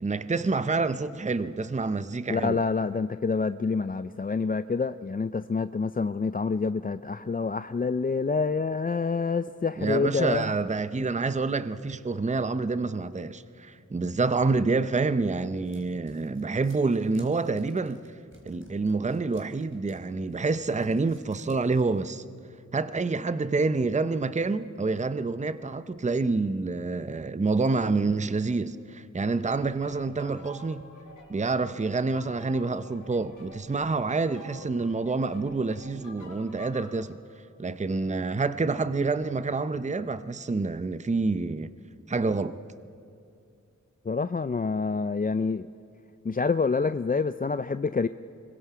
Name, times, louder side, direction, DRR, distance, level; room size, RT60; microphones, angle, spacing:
voice 1, 0.0-2.6 9.8-18.0 18.4-22.2 22.7-30.8 31.3-37.2 37.6-41.7 42.1-42.6, right 3 dB, 25° right, 0.6 m, -27 dB
voice 2, 2.3-10.5 44.1-45.7 46.2-48.1, left 4 dB, 30° left, 0.4 m, -27 dB
sound 1, 14.8-22.0, right 1 dB, 40° right, 4.4 m, -56 dB
sound 2, 29.2-37.0, left 1 dB, 80° left, 3.8 m, -49 dB
25.5 x 22.0 x 5.0 m
cardioid pair, 50°, 30 cm